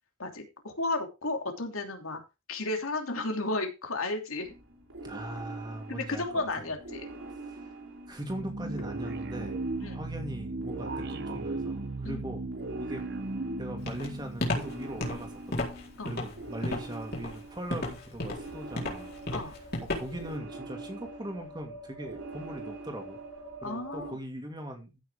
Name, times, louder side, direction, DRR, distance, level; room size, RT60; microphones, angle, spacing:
voice 1, 0.2-2.2 2.5-4.5 5.9-7.1 9.8-10.0 12.0-12.2 16.0-16.1 19.3-19.6 23.6-24.2, left 2 dB, 80° left, 3.0 m, -33 dB
sound 1, 4.4-24.1, right 2 dB, 70° right, 4.4 m, -44 dB
voice 2, 5.0-6.7 7.3-7.8 8.1-12.4 12.8-13.0 13.6-15.7 16.0-19.1 19.8-23.2 23.6-25.0, right 1 dB, 20° right, 2.4 m, -40 dB
sound 2, 8.2-15.4, right 2 dB, 50° right, 0.9 m, -37 dB
Walk footsteps, 13.9-20.3, left 1 dB, 45° left, 4.1 m, -33 dB
15.0 x 6.7 x 3.7 m
head